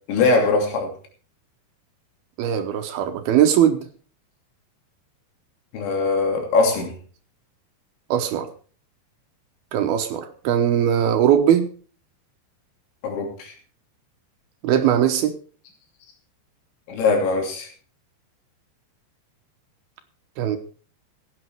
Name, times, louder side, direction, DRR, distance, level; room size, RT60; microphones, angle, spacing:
voice 1, 0.1-0.9 5.7-6.9 13.0-13.5 16.9-17.7, left 3 dB, 90° left, 3 dB, 5.2 m, -21 dB
voice 2, 2.4-3.9 8.1-8.5 9.7-11.7 14.6-15.3 20.4-20.6, right 9 dB, 70° right, 7 dB, 2.6 m, -20 dB
16.5 x 9.0 x 4.6 m, 0.41 s
omnidirectional pair, 5.1 m